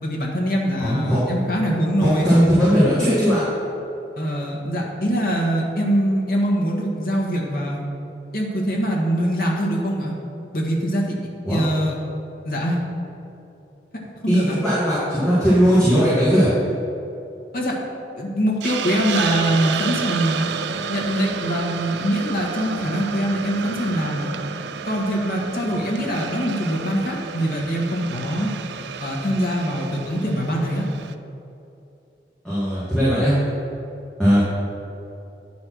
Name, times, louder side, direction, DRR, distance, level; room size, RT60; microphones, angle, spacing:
voice 1, 0.0-2.3 4.2-7.8 8.3-10.1 10.5-11.1 11.5-12.0 12.4-12.8 14.2-14.6 17.5-17.8 18.2-20.4 20.9-24.3 24.8-28.5 29.0-30.8, equal, 55° left, -1 dB, 1.4 m, -23 dB
voice 2, 0.8-1.2 2.0-3.4 11.5-11.6 14.3-16.5 32.4-33.3 34.2-34.6, equal, 5° left, -12 dB, 2.2 m, -18 dB
Hiss, 18.6-31.1, right 6 dB, 75° right, 0.4 m, -31 dB
9.6 x 4.3 x 6.2 m, 2.8 s
head